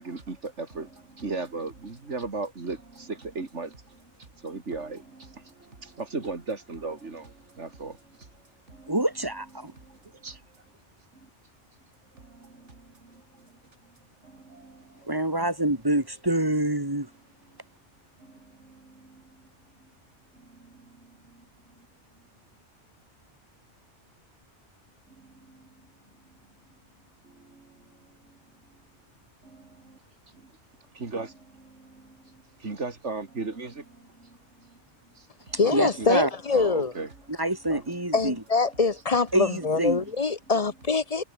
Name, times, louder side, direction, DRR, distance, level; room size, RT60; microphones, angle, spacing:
voice 1, 0.0-4.1 4.4-8.3 8.7-10.4 11.2-11.3 12.1-13.5 14.2-15.5 16.1-16.6 18.2-19.4 20.3-21.4 25.2-25.7 27.2-27.8 28.3-28.4 29.4-30.0 30.3-30.5 30.9-34.8 35.1-38.4 38.7-38.8 39.1-39.2 39.6-40.1 40.6-40.9, right 3 dB, 80° right, 3.2 m, -39 dB
voice 2, 8.9-9.7 15.1-17.1 35.7-36.3 37.3-38.4 39.3-40.0, right 1 dB, 20° right, 3.4 m, -26 dB
voice 3, 35.6-36.9 38.1-41.2, left 4 dB, 35° left, 1.0 m, -24 dB
omnidirectional pair, 1.2 m